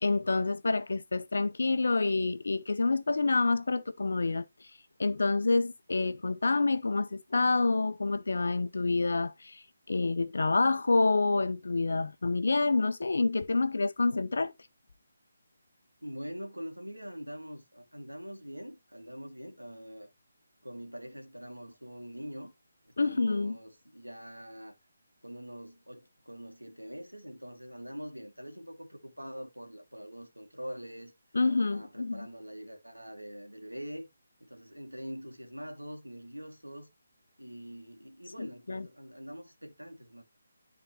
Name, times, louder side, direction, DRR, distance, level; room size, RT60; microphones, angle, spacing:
voice 1, 0.0-4.4 5.0-9.6 9.9-14.5 23.0-23.6 31.3-32.3 38.4-38.9, left 3 dB, 60° left, 0.8 m, -28 dB
voice 2, 16.0-20.1 20.6-22.5 22.8-24.7 25.2-31.1 31.7-34.1 34.4-36.9 37.4-40.2, equal, 85° right, 1.9 m, -44 dB
12.0 x 4.0 x 2.9 m
figure-of-eight pair, 150°, 0 cm